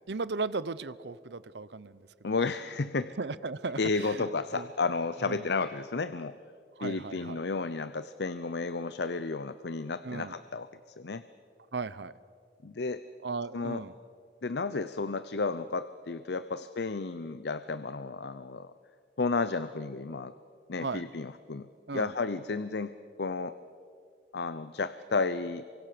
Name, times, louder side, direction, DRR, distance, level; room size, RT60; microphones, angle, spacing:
voice 1, 0.1-2.1 3.2-4.3 4.5-4.7 5.2-5.5 6.8-7.4 10.0-10.3 11.7-12.1 13.2-13.9 20.8-21.0 21.9-22.1, right 4 dB, 70° right, 17 dB, 0.8 m, -36 dB
voice 2, 2.2-3.1 3.8-6.4 6.8-10.7 11.0-11.2 12.6-13.0 13.5-13.8 14.4-18.7 19.2-20.3 20.7-21.7 21.9-23.6 24.3-25.6, left 4 dB, 65° left, 13 dB, 0.7 m, -32 dB
28.0 x 24.5 x 6.8 m, 2.3 s
head